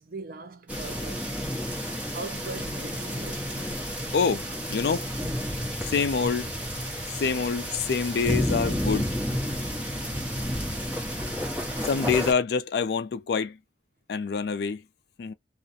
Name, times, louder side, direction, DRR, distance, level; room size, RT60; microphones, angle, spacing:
voice 1, 0.0-1.3 2.1-3.5, right 4 dB, 55° right, 0.5 m, -43 dB
sound 1, 0.7-12.3, equal, 10° right, 1.0 m, -31 dB
voice 2, 3.8-4.4 4.7-5.1 5.8-6.5 7.1-9.1 11.8-13.6 14.1-14.8 15.2-15.3, left 5 dB, 65° left, 0.4 m, -26 dB
2.4 x 2.1 x 2.6 m
head